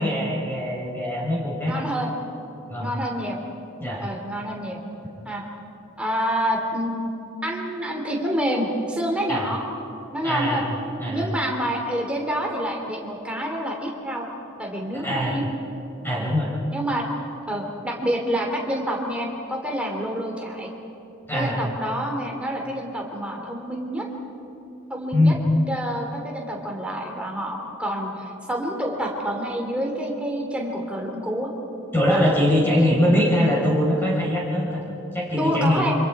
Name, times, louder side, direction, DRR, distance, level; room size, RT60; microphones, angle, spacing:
voice 1, 0.0-1.8 2.7-2.9 3.8-4.0 9.3-9.5 10.2-10.6 11.0-11.2 15.0-15.4 16.0-16.5 21.3-21.6 25.1-25.4 31.9-34.8 35.1-36.0, left 1 dB, 10° left, -5 dB, 4.5 m, -22 dB
voice 2, 1.6-2.1 2.8-3.4 4.0-4.8 5.2-5.4 6.0-7.1 7.4-9.6 10.1-10.6 11.0-14.3 14.6-15.4 16.7-17.1 17.5-20.7 21.3-24.0 24.9-25.3 25.7-31.5 32.0-32.2 32.7-33.0 35.4-35.9, equal, 5° right, 0 dB, 3.0 m, -27 dB
28.0 x 26.0 x 4.9 m, 2.8 s
head